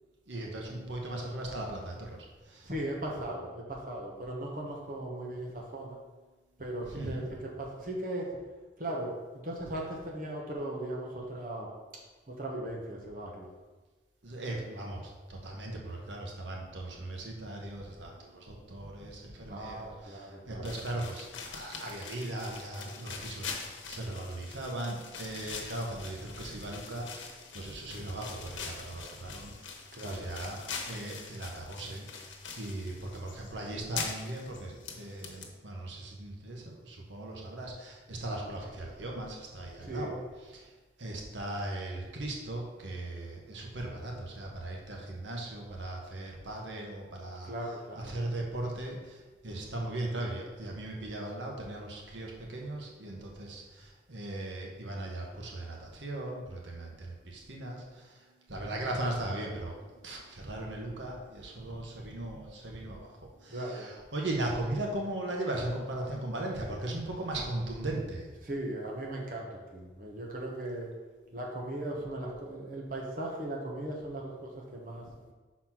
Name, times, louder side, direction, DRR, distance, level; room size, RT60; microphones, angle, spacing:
voice 1, 0.3-2.7 6.8-7.2 14.2-30.6 30.9-32.2 32.6-40.7 41.0-68.3, right 1 dB, 75° right, -1 dB, 1.2 m, -38 dB
voice 2, 2.6-6.0 6.6-8.3 8.8-9.1 9.4-11.7 12.4-13.5 19.5-20.7 29.9-30.3 39.8-40.1 47.5-48.1 63.5-63.9 68.4-70.9 71.3-75.3, right 1 dB, 45° right, -2 dB, 1.1 m, -38 dB
sound 1, 20.6-35.5, left 5 dB, 85° left, 1.0 m, -43 dB
5.8 x 4.3 x 5.9 m, 1.3 s
head